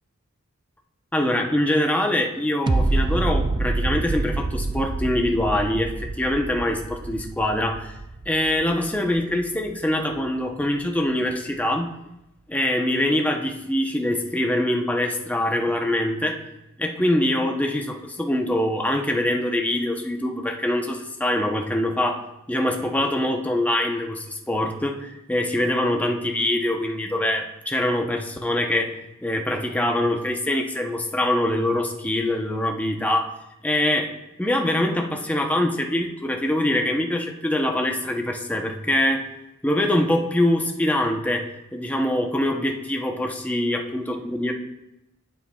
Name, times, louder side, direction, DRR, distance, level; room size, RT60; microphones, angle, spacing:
voice 1, 1.1-7.9 8.3-11.9 12.5-16.4 16.8-22.2 22.5-28.9 29.2-33.3 33.6-34.1 34.4-39.2 39.6-44.5, left 1 dB, 5° left, 2 dB, 0.7 m, -24 dB
sound 1, 2.7-9.7 10.2-10.3, right 2 dB, 20° right, 0.3 m, -27 dB
9.6 x 8.6 x 2.3 m, 0.91 s
head